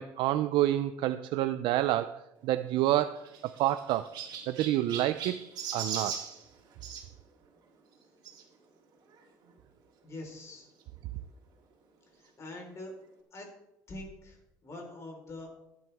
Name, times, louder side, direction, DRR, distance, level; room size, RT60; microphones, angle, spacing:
voice 1, 0.0-4.1 4.5-5.4 5.7-6.2, right 14 dB, 75° right, 11 dB, 0.5 m, -28 dB
Chirp tweet, 2.7-7.1 8.2-8.4 9.1-9.2 9.4-9.5 10.8-10.9, right 7 dB, 55° right, 2.9 m, -39 dB
voice 2, 10.0-10.7 12.1-12.9 13.3-13.5 13.9-15.5, left 2 dB, 35° left, 1 dB, 4.3 m, -44 dB
15.0 x 10.5 x 3.5 m, 0.87 s
cardioid pair, 130°, 8 cm